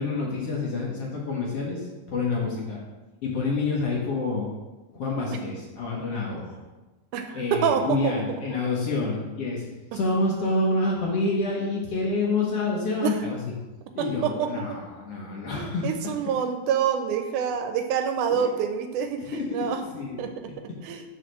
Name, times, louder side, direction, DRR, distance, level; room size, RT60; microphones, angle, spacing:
voice 1, 0.0-2.8 3.2-4.5 4.9-6.6 7.3-9.7 9.9-13.4 13.9-16.1 18.3-18.5 19.2-20.2, left 3 dB, 60° left, -3 dB, 1.9 m, -28 dB
voice 2, 7.1-8.2 8.5-8.6 9.9-10.0 13.0-13.1 14.0-14.8 15.6-19.8 20.2-21.0, right 7 dB, 80° right, 6 dB, 1.9 m, -27 dB
5.7 x 4.9 x 6.3 m, 1.2 s
omnidirectional pair, 3.7 m